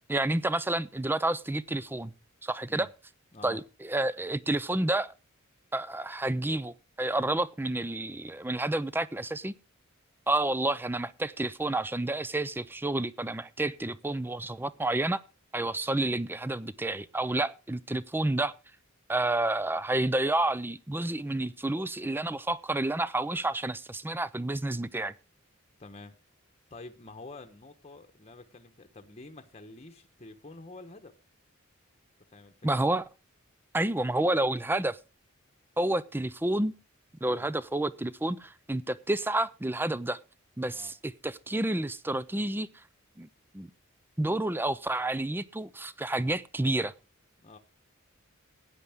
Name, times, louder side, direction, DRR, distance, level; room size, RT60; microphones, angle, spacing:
voice 1, 0.1-2.1 2.4-2.9 3.4-5.1 5.7-9.5 10.3-15.2 15.5-18.5 19.1-25.1 32.6-33.0 33.7-35.0 35.8-36.7 37.2-40.2 40.6-42.7 43.2-43.3 43.5-43.7 44.2-46.9, right 2 dB, 10° right, 17 dB, 0.5 m, -29 dB
voice 2, 25.8-26.1 26.7-31.1 32.3-32.5 37.2-37.5 40.7-40.9 47.4-47.6, left 2 dB, 30° left, 6 dB, 1.1 m, -48 dB
16.0 x 9.7 x 3.6 m, 0.30 s
head